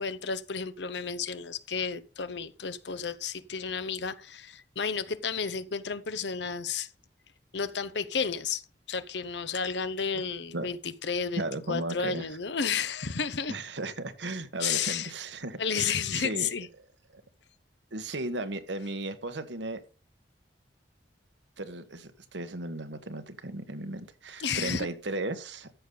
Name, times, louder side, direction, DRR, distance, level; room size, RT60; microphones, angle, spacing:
voice 1, 0.0-6.9 7.5-8.6 8.9-13.6 14.6-15.1 15.6-16.7 24.4-24.9, left 6 dB, 75° left, 0.9 m, -32 dB
voice 2, 11.4-12.2 13.5-16.5 17.9-19.8 21.6-25.7, right 2 dB, 85° right, 1.4 m, -35 dB
14.0 x 6.8 x 3.9 m
head